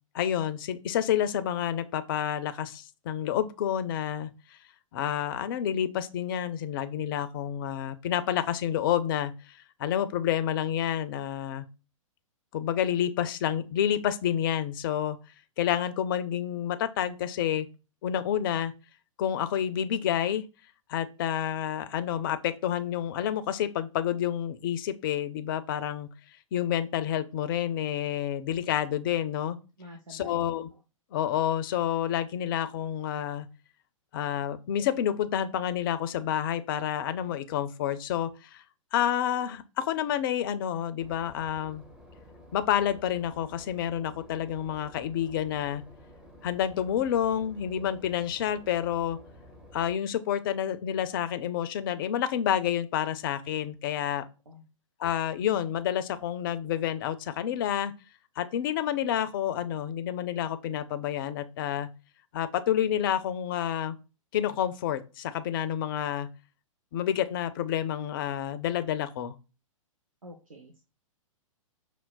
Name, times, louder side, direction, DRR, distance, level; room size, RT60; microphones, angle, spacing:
voice 1, 0.1-4.3 4.9-9.5 9.8-11.7 12.5-15.2 15.6-17.7 18.0-18.7 19.2-20.4 20.9-26.1 26.5-29.6 30.1-30.7 31.1-33.5 34.1-38.6 38.9-41.8 42.5-45.8 46.4-49.2 49.7-54.2 55.0-57.9 58.4-61.9 62.3-63.9 64.3-66.3 66.9-69.4, left 10 dB, 40° left, 0.4 m, -29 dB
voice 2, 29.8-30.4 54.5-54.6 70.2-70.8, equal, 80° right, 0.6 m, -47 dB
Boat Water vehicle / Engine, 41.0-50.0, left 1 dB, 5° right, 0.5 m, -52 dB
5.4 x 2.0 x 2.2 m
figure-of-eight pair, 110°, 17 cm